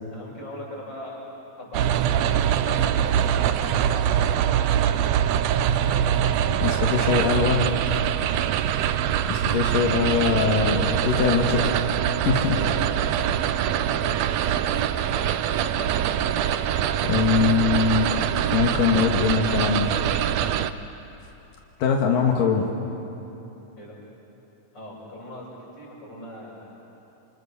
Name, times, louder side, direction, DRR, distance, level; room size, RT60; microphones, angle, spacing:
voice 1, 0.1-1.3 1.6-5.3 12.5-12.8 13.1-14.3 15.5-15.8 23.8-24.0 24.7-26.8, left 1 dB, 30° left, -4 dB, 7.4 m, -41 dB
sound 1, 1.7-20.7, right 10 dB, 75° right, 1.6 m, -23 dB
voice 2, 6.6-7.6 9.3-11.7 12.3-12.6 17.0-18.1 18.5-19.9 21.8-22.7, left 5 dB, 85° left, 1 dB, 3.3 m, -22 dB
28.0 x 27.0 x 7.0 m, 2.9 s
omnidirectional pair, 3.8 m